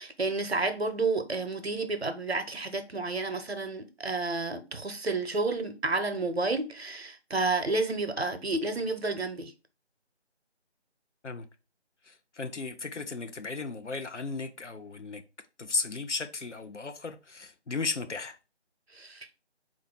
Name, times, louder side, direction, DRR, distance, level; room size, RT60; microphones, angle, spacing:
voice 1, 0.0-9.5 18.9-19.3, right 3 dB, 60° right, 0.8 m, -30 dB
voice 2, 12.1-15.2 15.6-18.4, left 4 dB, 80° left, 0.7 m, -35 dB
4.2 x 2.4 x 4.6 m
figure-of-eight pair, 165°, 35 cm